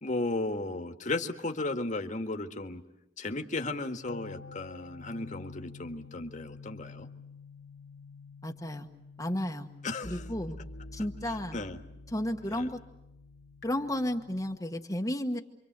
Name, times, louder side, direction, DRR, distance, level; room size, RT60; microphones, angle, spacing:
voice 1, 0.0-2.8 3.2-7.1 9.8-10.2 11.3-11.8 12.5-12.7, left 2 dB, 45° left, 6 dB, 1.8 m, -35 dB
sound 1, 4.1-14.6, left 3 dB, 70° left, 2.5 m, -48 dB
voice 2, 8.4-8.9 9.2-9.7 10.1-10.6 10.9-11.6 12.1-12.8 13.6-15.4, left 1 dB, 20° left, 3 dB, 1.3 m, -32 dB
28.5 x 24.5 x 8.1 m, 0.91 s
head